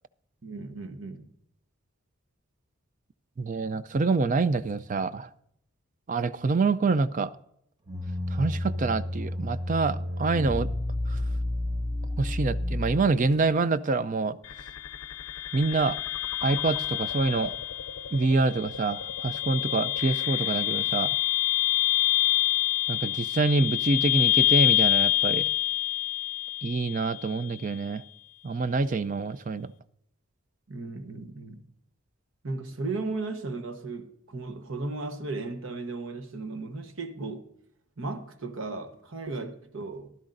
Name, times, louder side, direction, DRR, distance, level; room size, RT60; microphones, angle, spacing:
voice 1, 0.4-1.3 30.7-31.6 32.4-37.5 38.0-40.2, right 3 dB, 65° right, 1.0 m, -35 dB
voice 2, 3.4-5.3 6.1-7.4 8.3-10.7 11.1-11.2 12.2-14.4 15.5-16.0 16.4-17.5 18.1-21.2 22.9-25.4 26.6-28.0 28.4-29.7, right 3 dB, 35° right, 0.4 m, -26 dB
sound 1, 7.9-13.3, left 1 dB, 20° right, 0.7 m, -31 dB
sound 2, 14.4-27.4, left 14 dB, 80° left, 0.5 m, -27 dB
14.5 x 12.0 x 2.5 m
head